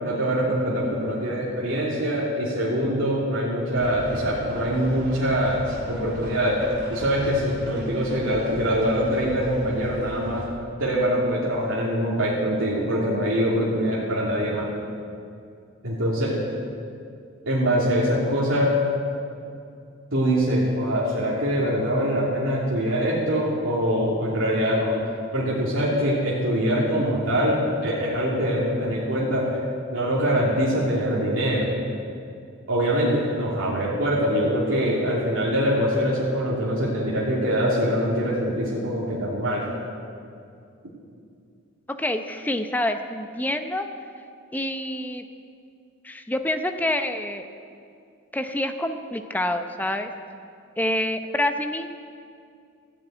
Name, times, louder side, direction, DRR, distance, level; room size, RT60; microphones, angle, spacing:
voice 1, 0.0-6.6 6.9-10.4 10.8-14.7 15.8-16.4 17.5-18.7 20.1-24.9 25.3-29.6 29.9-31.7 32.7-39.6, equal, 70° right, -8 dB, 2.8 m, -23 dB
sound 1, 3.7-10.5, equal, 55° right, 3.6 m, -38 dB
voice 2, 42.0-43.9 44.5-45.2 46.0-47.4 48.3-50.1 50.8-51.9, left 1 dB, 10° left, 6 dB, 0.7 m, -27 dB
15.5 x 9.1 x 9.2 m, 2.4 s
head